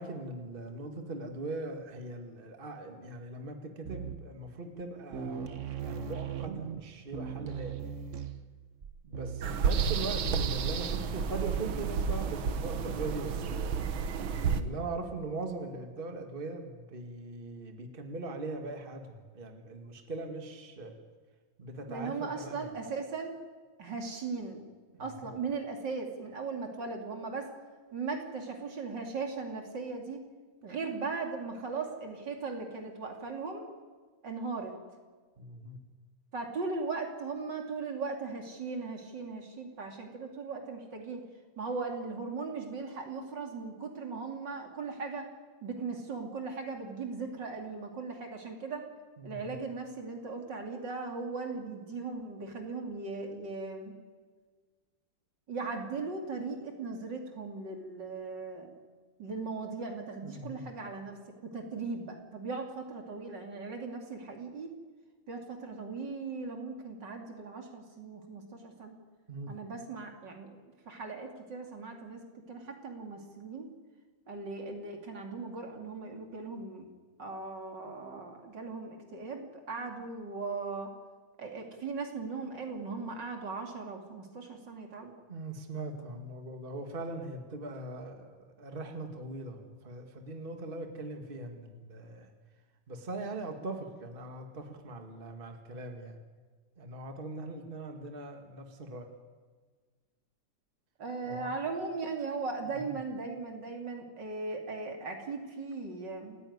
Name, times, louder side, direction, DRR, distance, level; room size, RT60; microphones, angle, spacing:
voice 1, 0.0-5.5 5.8-7.8 9.0-13.8 14.4-20.9 21.6-22.7 25.0-25.3 35.4-35.8 49.2-49.6 60.2-60.7 69.3-69.5 85.3-92.3 92.9-96.2 96.8-99.1 101.2-101.5 102.8-102.9, right 2 dB, 30° right, 4 dB, 2.0 m, -40 dB
sound 1, 3.8-4.4 4.8-4.9 5.1-10.5, right 8 dB, 45° right, 1.1 m, -39 dB
sound 2, 9.4-14.6, right 6 dB, 85° right, 1.9 m, -31 dB
voice 2, 21.9-23.4 23.8-24.7 25.0-27.5 27.9-30.2 30.6-33.7 34.2-34.7 36.3-41.2 41.6-45.3 45.6-48.8 49.2-53.9 55.5-58.7 59.2-61.2 61.4-64.7 65.3-68.9 69.5-70.6 70.9-72.2 72.5-73.7 74.3-76.9 77.2-80.9 81.4-85.1 101.0-106.4, right 4 dB, 65° right, 3 dB, 3.5 m, -38 dB
28.5 x 15.0 x 9.6 m, 1.5 s
omnidirectional pair, 2.1 m